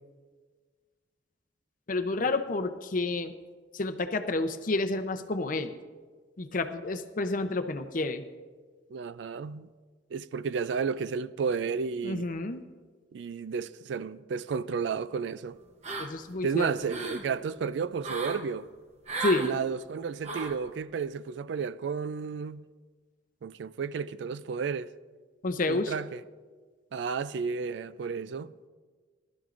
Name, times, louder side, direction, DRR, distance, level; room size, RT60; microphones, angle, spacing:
voice 1, 1.9-3.3 3.7-5.7 6.4-8.2 12.0-12.6 16.0-16.7 19.2-19.6 25.4-25.9, left 2 dB, 45° left, 0.6 m, -30 dB
voice 2, 8.9-9.7 10.1-12.2 13.1-15.6 16.4-18.7 19.4-22.6 23.4-24.9 25.7-26.2 26.9-28.5, right 5 dB, 70° right, 0.4 m, -32 dB
sound 1, 15.8-16.4 16.7-17.3 18.0-18.4 19.1-19.5 20.2-20.6, right 3 dB, 35° right, 0.9 m, -34 dB
18.5 x 12.0 x 2.5 m
head